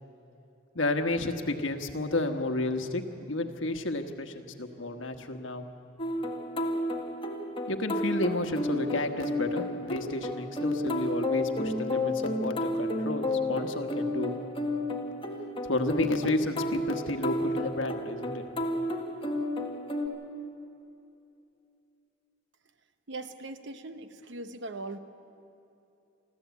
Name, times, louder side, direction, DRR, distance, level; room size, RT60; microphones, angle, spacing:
voice 1, 0.7-5.6 7.7-14.3 15.7-18.4, left 2 dB, 80° left, 6 dB, 1.3 m, -31 dB
sound 1, 6.0-20.1, left 1 dB, 30° left, 1.7 m, -32 dB
voice 2, 23.1-25.0, right 2 dB, 65° right, 10 dB, 0.9 m, -40 dB
25.0 x 14.0 x 8.3 m, 2.8 s
head